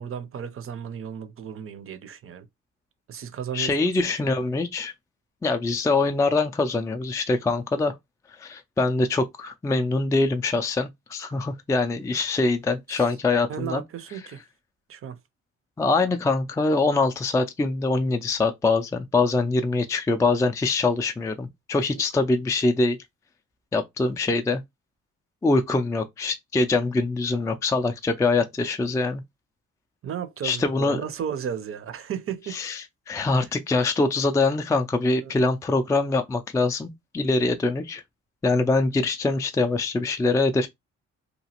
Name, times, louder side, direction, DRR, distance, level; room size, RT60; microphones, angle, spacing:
voice 1, 0.0-2.5 3.1-4.3 12.9-13.1 13.5-14.4 14.9-15.2 21.9-22.0 30.0-32.6 33.3-33.5 35.2-35.4, right 8 dB, 45° right, 0.6 m, -34 dB
voice 2, 3.5-4.9 5.4-7.9 8.4-13.8 15.8-23.0 23.7-24.6 25.4-29.2 30.4-31.0 32.5-38.0 38.4-40.7, left 3 dB, 10° left, 0.3 m, -24 dB
2.9 x 2.4 x 2.8 m
cardioid pair, 90°, 30 cm